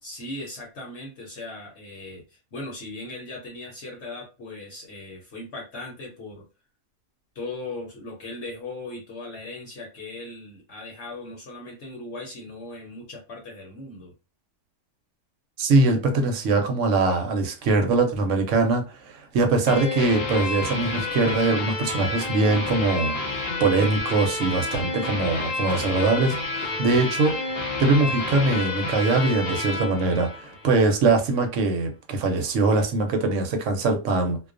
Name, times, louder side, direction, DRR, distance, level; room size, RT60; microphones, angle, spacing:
voice 1, 0.0-6.4 7.3-14.1, left 2 dB, 65° left, 0.9 m, -38 dB
voice 2, 15.6-27.4 27.8-34.4, right 3 dB, 75° right, 0.9 m, -22 dB
sound 1, 19.7-30.9, left 3 dB, 45° left, 0.6 m, -30 dB
2.3 x 2.2 x 2.4 m
omnidirectional pair, 1.3 m